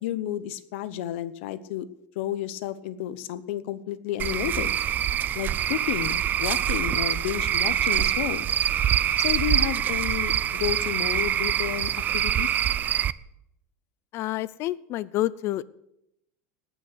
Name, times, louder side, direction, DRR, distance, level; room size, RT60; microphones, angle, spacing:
voice 1, 0.0-1.9 2.2-4.7 5.3-8.5 9.2-12.7, left 12 dB, 70° left, 15 dB, 0.9 m, -31 dB
Cricket / Frog, 4.2-13.1, right 10 dB, 25° right, 0.4 m, -25 dB
voice 2, 14.1-15.6, left 15 dB, 40° left, 20 dB, 0.5 m, -28 dB
18.0 x 6.3 x 8.0 m, 0.81 s
supercardioid pair, 150°, 7 cm